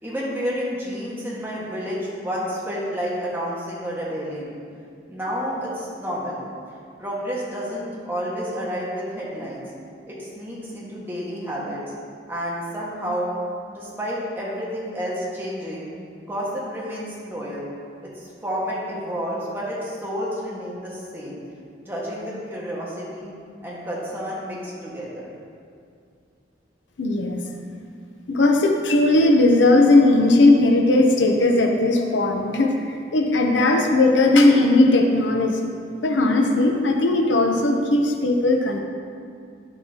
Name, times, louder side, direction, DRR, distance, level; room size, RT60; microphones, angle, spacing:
voice 1, 0.0-4.5 5.1-6.4 7.0-9.6 10.1-11.8 12.3-13.3 13.7-15.9 16.2-17.7 18.0-21.4 21.8-23.3 23.6-25.3, equal, 10° right, -7 dB, 1.6 m, -30 dB
voice 2, 27.0-27.4 28.3-32.7 33.1-35.6 36.0-38.8, left 2 dB, 85° left, 2 dB, 0.8 m, -17 dB
10.5 x 7.2 x 2.9 m, 2.3 s
head